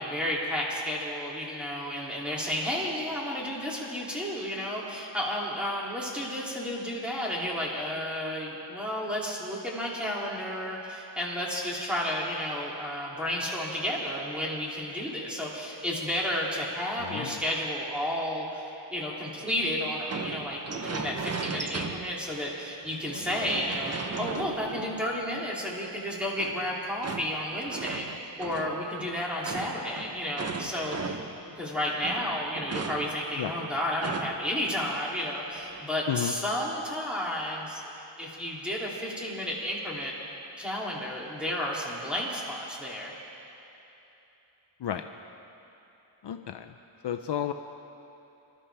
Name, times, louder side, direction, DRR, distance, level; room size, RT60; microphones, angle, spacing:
voice 1, 0.0-28.1 28.4-31.2 31.6-37.8 38.2-40.1 40.6-43.1, left 1 dB, ahead, -5 dB, 2.7 m, -32 dB
voice 2, 17.0-17.4 33.4-33.5 36.1-36.3 44.8-45.0 46.2-46.7 47.0-47.5, left 10 dB, 60° left, 6 dB, 0.5 m, -32 dB
sound 1, 20.1-22.4 22.8-25.4 26.3-31.5 31.8-34.6 34.9-35.0 35.5-35.9, right 4 dB, 35° right, 0.7 m, -37 dB
25.0 x 12.5 x 3.4 m, 3.0 s
wide cardioid pair, 115°, 48 cm